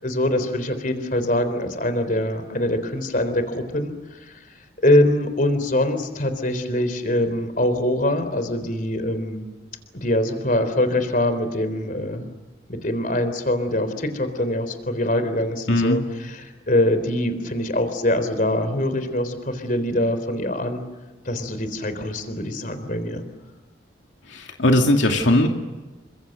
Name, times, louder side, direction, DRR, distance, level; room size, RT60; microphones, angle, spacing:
voice 1, 0.0-4.4 4.8-9.4 9.9-12.3 12.7-20.8 21.2-23.2, left 1 dB, 45° left, 10 dB, 3.8 m, -23 dB
voice 2, 15.7-16.0 24.3-25.5, left 1 dB, 75° left, 3 dB, 2.6 m, -19 dB
29.5 x 25.5 x 6.7 m, 1.2 s
head